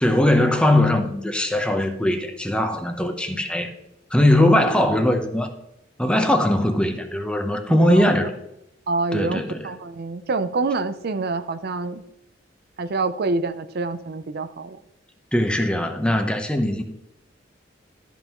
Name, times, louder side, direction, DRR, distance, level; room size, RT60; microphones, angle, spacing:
voice 1, 0.0-3.7 4.1-5.5 6.0-8.3 9.1-9.7 15.3-16.8, left 1 dB, 5° left, 0.9 m, -20 dB
voice 2, 7.7-8.1 8.9-12.0 12.8-14.8, right 3 dB, 55° right, 0.5 m, -26 dB
12.5 x 5.5 x 3.0 m
head